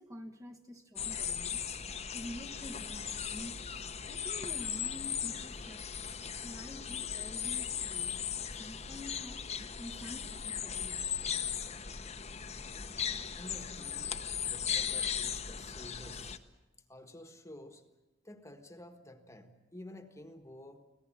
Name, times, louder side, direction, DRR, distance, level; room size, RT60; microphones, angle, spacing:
voice 1, 0.0-1.6 2.1-3.8 4.0-5.8 6.4-8.3 8.6-11.1, left 1 dB, 20° right, 2 dB, 1.3 m, -48 dB
sound 1, 1.0-16.4, left 8 dB, 35° left, 1.0 m, -37 dB
voice 2, 13.4-16.4 16.9-17.8 18.2-20.8, left 1 dB, 15° left, 7 dB, 1.5 m, -51 dB
26.0 x 17.0 x 8.9 m, 1.1 s
head